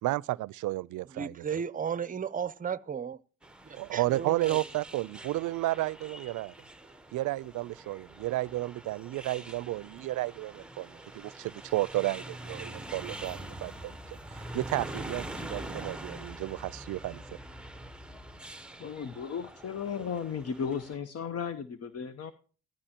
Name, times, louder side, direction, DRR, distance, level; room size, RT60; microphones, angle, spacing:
voice 1, 0.0-1.4 3.8-6.5 7.1-14.0 14.3-17.2, right 17 dB, 80° right, 0.5 m, -32 dB
voice 2, 1.1-3.2 3.7-4.6, right 7 dB, 25° right, 0.6 m, -34 dB
sound 1, 3.4-21.0, right 1 dB, 5° right, 0.9 m, -44 dB
sound 2, 13.2-18.4, left 2 dB, 20° left, 3.3 m, -51 dB
voice 3, 18.8-22.3, left 6 dB, 55° left, 0.9 m, -35 dB
16.0 x 12.0 x 2.8 m
cardioid pair, 90°, 30 cm